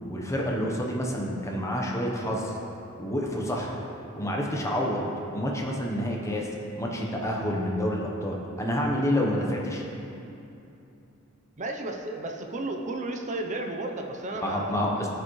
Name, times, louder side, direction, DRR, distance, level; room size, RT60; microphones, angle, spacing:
voice 1, 0.1-2.6 3.0-3.8 4.2-6.5 6.8-9.8 14.4-15.1, equal, 15° left, -1 dB, 0.9 m, -28 dB
voice 2, 11.6-15.1, right 2 dB, 35° right, 3 dB, 0.6 m, -33 dB
13.0 x 5.2 x 3.1 m, 2.8 s
head